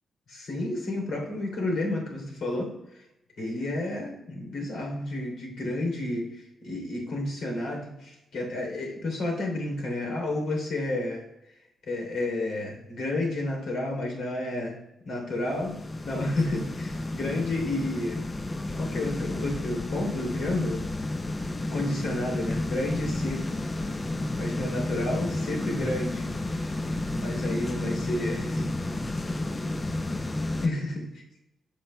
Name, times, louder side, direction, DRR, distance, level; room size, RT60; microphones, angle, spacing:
voice 1, 0.3-2.7 3.4-6.3 6.6-11.2 11.9-14.8 15.0-15.8 16.0-18.2 18.8-20.8 21.7-23.4 24.4-26.2 27.2-28.7 30.6-31.0, left 2 dB, 75° left, 1 dB, 3.3 m, -31 dB
sound 1, 15.4-30.7, left 2 dB, 20° left, 0.5 m, -31 dB
15.0 x 6.9 x 2.3 m, 0.89 s
wide cardioid pair, 145°, 0 cm